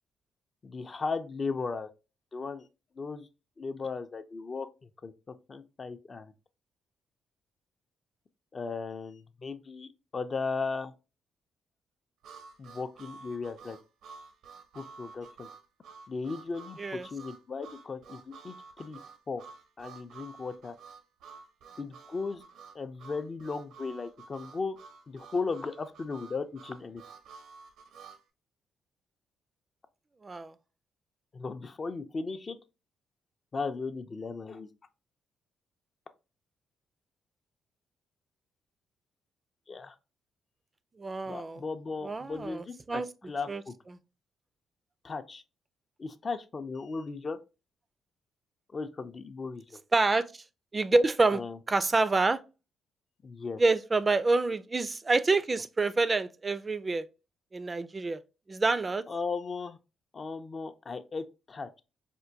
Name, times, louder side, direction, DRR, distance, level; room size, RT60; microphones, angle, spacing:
voice 1, 0.6-1.9 2.3-2.7 3.0-3.3 3.6-6.3 8.5-10.9 12.6-13.8 14.7-15.5 16.1-19.0 19.3-19.4 19.8-20.8 21.8-22.4 22.7-24.8 25.1-27.0 31.3-32.6 33.5-34.7 39.7-40.0 41.3-43.8 45.0-45.4 46.0-47.4 48.7-49.8 51.3-51.6 53.2-53.6 59.1-59.8 60.1-61.7, left 4 dB, 45° left, 0.4 m, -36 dB
Harmonica, 12.2-28.2, right 5 dB, 80° right, 0.6 m, -51 dB
voice 2, 41.0-41.6 42.0-43.1 43.5-43.6 49.9-50.3 50.7-51.4 51.7-52.4 53.6-57.0 57.5-58.2 58.5-59.0, right 3 dB, 30° right, 0.3 m, -27 dB
4.4 x 2.2 x 2.6 m
supercardioid pair, 55°, 0 cm